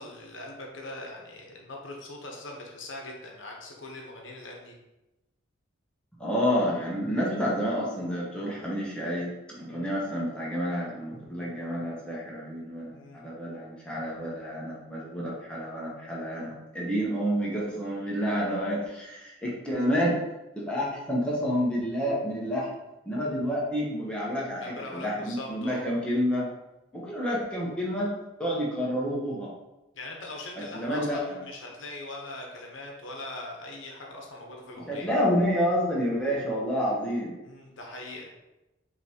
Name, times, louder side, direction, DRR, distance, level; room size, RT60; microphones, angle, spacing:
voice 1, 0.0-4.7 8.3-8.4 9.6-9.9 12.9-13.2 24.6-25.9 29.9-35.1 36.4-36.5 37.4-38.3, left 2 dB, 75° left, 0 dB, 0.8 m, -41 dB
voice 2, 6.2-9.3 9.6-20.2 20.5-22.7 23.1-26.5 26.9-28.1 28.4-29.5 30.6-31.4 34.8-37.3, equal, 5° left, -6 dB, 0.8 m, -29 dB
5.1 x 2.8 x 2.8 m, 0.98 s
head